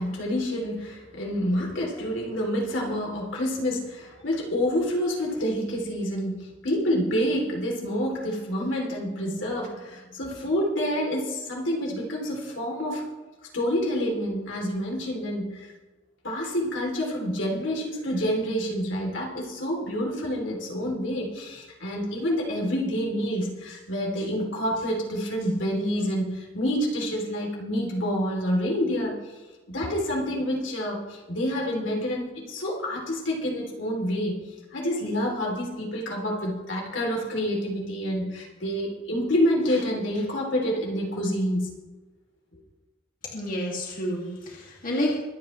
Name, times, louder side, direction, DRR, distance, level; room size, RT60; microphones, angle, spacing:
voice 1, 0.0-13.0 13.5-15.7 16.2-29.1 29.7-41.7, equal, 70° left, -1 dB, 3.3 m, -28 dB
voice 2, 43.3-45.2, equal, 45° left, -4 dB, 2.5 m, -29 dB
24.5 x 9.3 x 3.3 m, 1.2 s
head